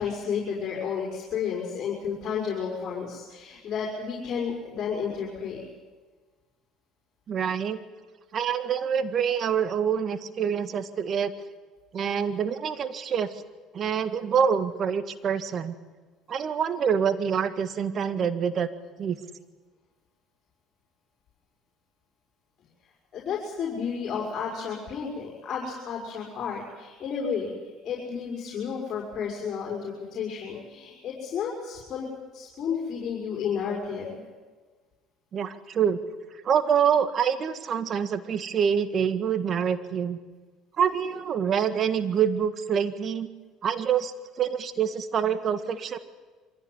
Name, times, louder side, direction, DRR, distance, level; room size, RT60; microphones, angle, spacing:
voice 1, 0.0-5.6 23.1-27.5 27.8-32.1 32.3-34.2, left 6 dB, 45° left, -2 dB, 6.0 m, -32 dB
voice 2, 7.3-7.8 8.3-11.3 11.9-13.4 13.7-15.7 16.3-18.7 19.0-19.2 35.3-36.0 36.4-40.2 40.8-43.3 43.6-46.0, right 7 dB, 45° right, 12 dB, 1.8 m, -26 dB
24.0 x 16.5 x 9.8 m, 1.3 s
supercardioid pair, 85°, 0 cm